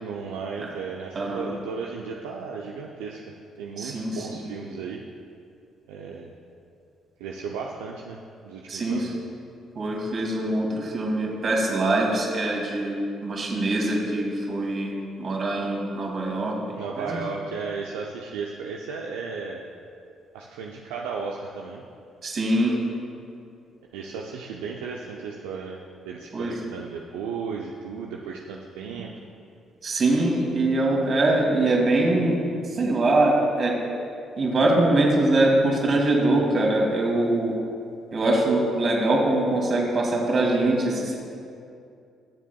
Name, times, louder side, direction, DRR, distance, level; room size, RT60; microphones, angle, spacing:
voice 1, 0.0-3.2 3.6-5.0 5.9-6.3 7.2-9.2 16.7-19.6 20.3-21.9 23.9-25.8 26.0-29.1, right 5 dB, 80° right, -1 dB, 0.5 m, -35 dB
voice 2, 3.8-4.5 8.7-9.1 9.8-17.2 22.2-22.8 26.3-26.5 29.8-32.4 32.7-33.8 34.4-37.6 38.1-41.1, right 2 dB, 50° right, -1 dB, 2.5 m, -23 dB
21.0 x 7.3 x 2.3 m, 2.5 s
hypercardioid pair, 50°, 0 cm